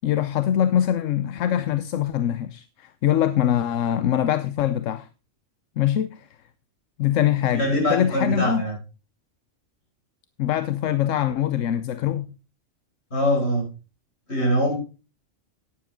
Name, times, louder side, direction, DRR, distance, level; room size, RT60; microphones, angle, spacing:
voice 1, 0.0-5.1 5.8-6.3 7.0-8.6 10.4-12.2, left 11 dB, 85° left, 1.1 m, -23 dB
voice 2, 7.5-8.7 13.1-13.7 14.3-14.7, equal, 60° left, 6.7 m, -22 dB
12.0 x 9.9 x 3.7 m
omnidirectional pair, 1.3 m